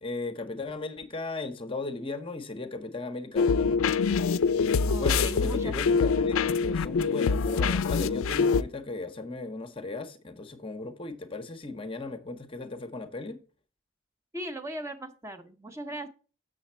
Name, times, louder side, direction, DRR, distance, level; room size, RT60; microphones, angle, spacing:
voice 1, 0.0-3.8 5.0-13.4, left 3 dB, 25° left, 0.7 m, -36 dB
sound 1, 3.4-8.6, left 5 dB, 75° left, 0.4 m, -25 dB
voice 2, 4.9-6.0 14.3-16.1, right 1 dB, 15° right, 0.6 m, -38 dB
6.9 x 6.6 x 4.2 m
head